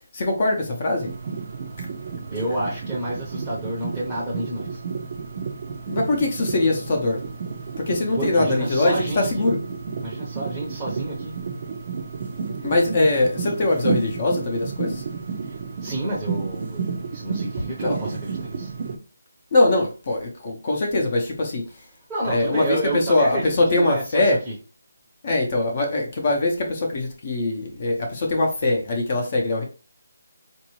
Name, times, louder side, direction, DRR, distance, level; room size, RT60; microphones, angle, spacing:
voice 1, 0.1-1.1 5.9-7.2 7.8-9.6 12.6-15.0 17.8-18.0 19.5-21.6 22.3-24.4 25.2-29.6, left 2 dB, 30° left, 0.7 m, -22 dB
sound 1, 1.0-19.0, right 5 dB, 30° right, 0.5 m, -32 dB
voice 2, 2.3-4.8 8.1-9.5 10.0-11.3 15.8-18.7 22.1-24.5, right 1 dB, ahead, 0.8 m, -30 dB
4.2 x 2.6 x 3.0 m
hypercardioid pair, 175°, 0 cm